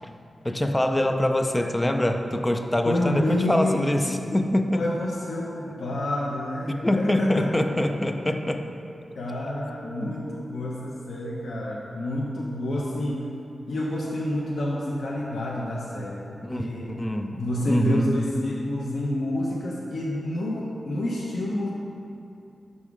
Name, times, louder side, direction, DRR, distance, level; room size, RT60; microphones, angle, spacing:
voice 1, 0.4-4.8 6.8-8.6 10.0-10.1 16.4-17.4 17.7-18.1, left 1 dB, 15° left, 6 dB, 0.4 m, -24 dB
voice 2, 2.9-3.9 4.7-7.5 9.2-13.3 13.7-17.0 17.3-21.7, left 1 dB, 80° left, -4 dB, 0.7 m, -28 dB
6.1 x 5.5 x 4.8 m, 2.7 s
wide cardioid pair, 100°, 0 cm